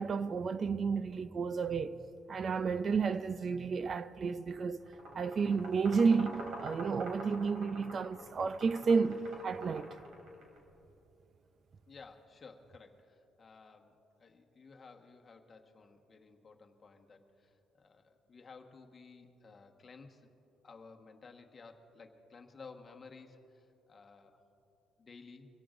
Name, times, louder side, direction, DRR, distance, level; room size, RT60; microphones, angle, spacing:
voice 1, 0.0-2.0 2.3-4.8 5.1-10.0, right 5 dB, 40° right, 0.4 m, -31 dB
sound 1, 4.9-10.6, right 1 dB, 70° right, 3.2 m, -46 dB
voice 2, 11.9-20.3 20.6-24.4 25.0-25.5, left 4 dB, 35° left, 1.3 m, -55 dB
24.0 x 17.0 x 2.6 m
cardioid pair, 105°, 0 cm